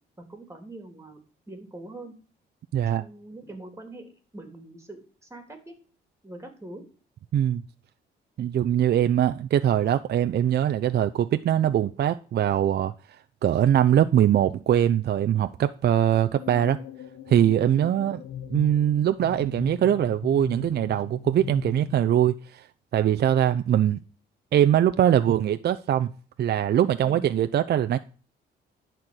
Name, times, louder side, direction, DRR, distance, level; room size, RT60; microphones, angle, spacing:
voice 1, 0.2-1.2 1.5-2.1 2.9-5.7 6.2-6.8 27.0-27.3, right 2 dB, 15° right, 3.3 m, -43 dB
voice 2, 8.4-16.8 17.3-18.2 18.5-22.7 22.9-24.0 24.5-26.1 26.4-28.0, right 10 dB, 55° right, 0.6 m, -22 dB
sound 1, 16.4-22.0, left 9 dB, 65° left, 0.9 m, -39 dB
11.0 x 4.5 x 7.9 m
cardioid pair, 90°, 20 cm